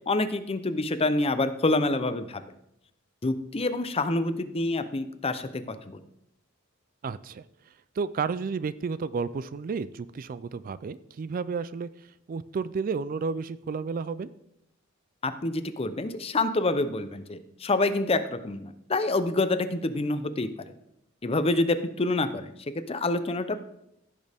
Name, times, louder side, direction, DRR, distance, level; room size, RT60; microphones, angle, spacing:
voice 1, 0.1-2.4 3.2-6.0 15.2-20.5 21.2-23.6, left 2 dB, 30° left, 11 dB, 0.6 m, -27 dB
voice 2, 7.0-7.4 8.0-11.9 12.3-14.3, right 5 dB, 45° right, 16 dB, 0.3 m, -31 dB
15.5 x 6.5 x 3.5 m, 0.79 s
head